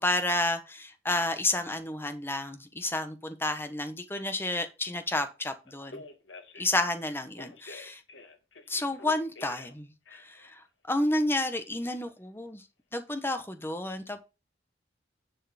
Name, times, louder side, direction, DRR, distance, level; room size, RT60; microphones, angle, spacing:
voice 1, 0.0-6.0 6.5-8.0 8.7-10.6 10.9-12.6 12.9-14.2, left 2 dB, 10° left, 8 dB, 1.2 m, -30 dB
Telephone, 5.7-6.8 7.4-9.7 10.1-10.5, left 3 dB, 80° left, 2.0 m, -47 dB
10.5 x 4.7 x 5.9 m, 0.29 s
head